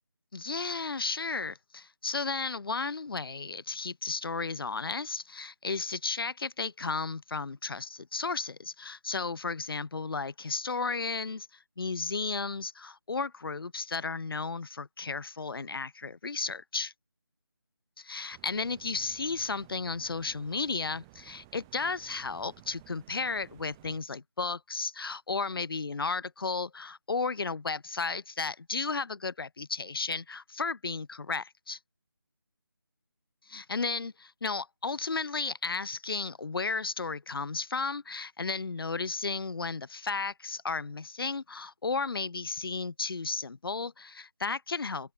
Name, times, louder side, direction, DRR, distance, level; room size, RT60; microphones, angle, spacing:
voice 1, 0.3-16.9 18.0-31.8 33.5-45.1, left 4 dB, 65° left, 0.6 m, -34 dB
sound 1, 18.3-24.0, right 23 dB, 10° right, 2.9 m, -56 dB
figure-of-eight pair, 175°, 13 cm